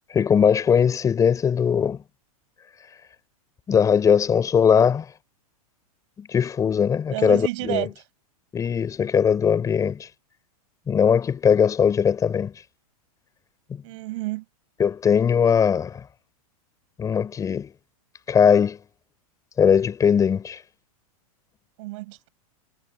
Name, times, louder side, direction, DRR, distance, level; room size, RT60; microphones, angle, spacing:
voice 1, 0.1-2.0 3.7-5.1 6.2-7.9 8.5-10.1 10.9-12.5 13.7-13.8 14.8-16.0 17.0-17.7 18.3-18.8 19.6-20.6, left 7 dB, 15° left, 3.7 m, -20 dB
voice 2, 7.1-7.9 13.8-14.4 21.8-22.3, right 21 dB, 55° right, 6.1 m, -30 dB
hypercardioid pair, 145°, 19 cm